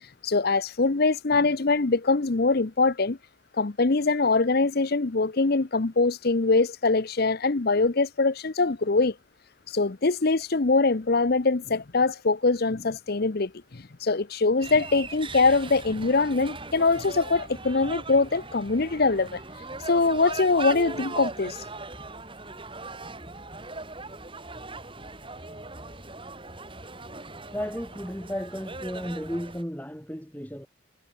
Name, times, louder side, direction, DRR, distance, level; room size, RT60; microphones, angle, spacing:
voice 1, 0.2-3.2 3.6-9.1 9.7-19.4 19.9-21.6, left 3 dB, 50° left, 0.8 m, -23 dB
sound 1, 14.6-29.6, right 3 dB, 25° right, 6.2 m, -39 dB
voice 2, 27.5-30.7, equal, 10° left, 6.8 m, -34 dB
head